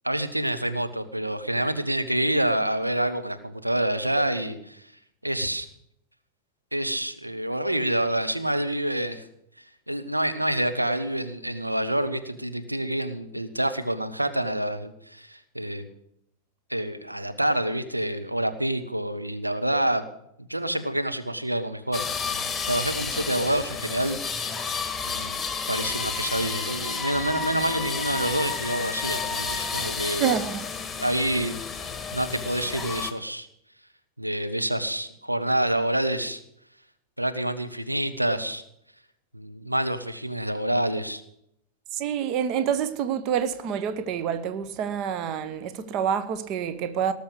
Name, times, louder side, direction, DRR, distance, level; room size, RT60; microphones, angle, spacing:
voice 1, 0.0-4.8 5.2-5.7 6.7-9.2 9.9-15.9 16.7-20.0 20.4-22.0 22.3-24.5 25.0-25.4 25.7-30.2 31.0-33.5 34.2-36.4 37.2-38.6 39.3-41.2, right 1 dB, 85° right, 1.0 m, -27 dB
sound 1, 21.9-33.1, left 5 dB, 10° left, 1.6 m, -31 dB
voice 2, 30.2-30.7 41.9-47.1, right 8 dB, 40° right, 1.0 m, -27 dB
18.5 x 6.8 x 8.0 m
figure-of-eight pair, 90°, 0 cm